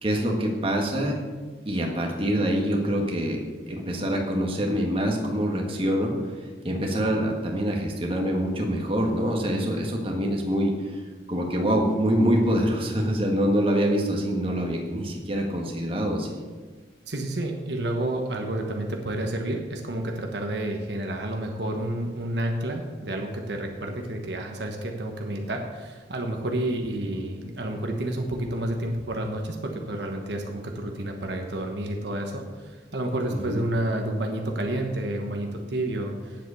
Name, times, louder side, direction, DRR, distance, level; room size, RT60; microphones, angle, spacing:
voice 1, 0.0-1.2 1.6-3.4 3.7-6.3 6.6-11.0 11.3-16.4 27.0-27.1 33.5-33.6, equal, 30° right, 0 dB, 1.6 m, -25 dB
voice 2, 17.1-36.5, right 1 dB, 65° right, 2 dB, 1.2 m, -30 dB
9.3 x 7.8 x 6.9 m, 1.4 s
head